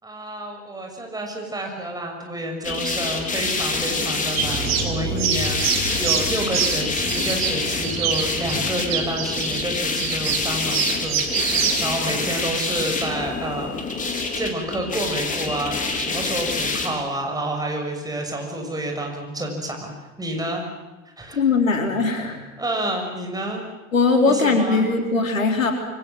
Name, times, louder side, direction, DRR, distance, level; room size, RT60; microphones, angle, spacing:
voice 1, 0.0-13.8 14.1-20.6 21.2-21.4 22.6-23.6 24.3-25.1, right 1 dB, 10° right, 2 dB, 6.3 m, -29 dB
sound 1, 2.6-17.0, left 3 dB, 20° left, 4.0 m, -27 dB
sound 2, 4.4-11.8, right 7 dB, 40° right, 4.1 m, -26 dB
voice 2, 21.3-22.4 23.9-25.7, left 4 dB, 75° left, 4 dB, 3.8 m, -20 dB
26.5 x 24.0 x 7.8 m, 1.1 s
figure-of-eight pair, 85°, 40 cm